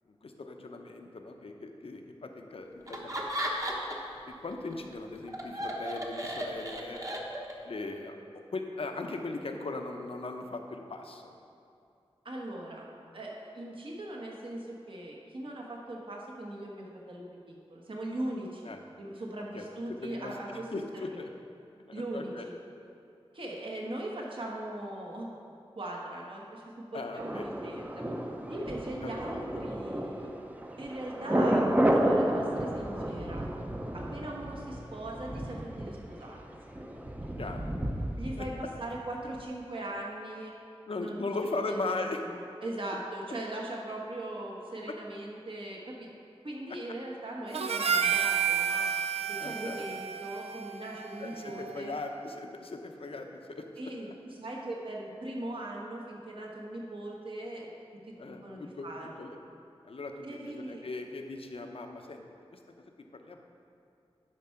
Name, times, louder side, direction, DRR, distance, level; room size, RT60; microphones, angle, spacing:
voice 1, 0.2-3.3 4.3-7.1 7.6-11.4 18.6-18.8 19.5-21.3 21.9-22.5 26.9-27.5 29.0-29.1 34.1-34.3 37.4-37.7 38.4-38.5 40.9-42.2 44.9-45.0 49.4-49.8 51.2-53.7 58.2-58.9 59.2-59.4 59.8-62.2 62.5-63.4, left 3 dB, 65° left, 4 dB, 0.8 m, -39 dB
Laughter, 2.9-4.2 4.5-7.7, equal, 30° right, 1.2 m, -35 dB
voice 2, 12.2-12.9 13.1-20.7 20.9-21.2 21.9-22.5 23.3-25.3 25.7-28.0 28.5-30.3 30.8-33.5 33.9-36.4 36.7-36.8 38.2-40.5 41.0-41.3 41.6-46.1 46.4-48.8 49.3-51.9 53.8-57.7 58.3-59.2 60.2-60.9, right 1 dB, 55° right, -2 dB, 1.4 m, -40 dB
Thunder, 27.2-39.1 39.4-39.5, right 1 dB, 15° right, 0.7 m, -31 dB
Harmonica, 47.5-52.0, right 8 dB, 80° right, 0.5 m, -31 dB
11.0 x 4.6 x 5.8 m, 2.6 s
wide cardioid pair, 80°, 10 cm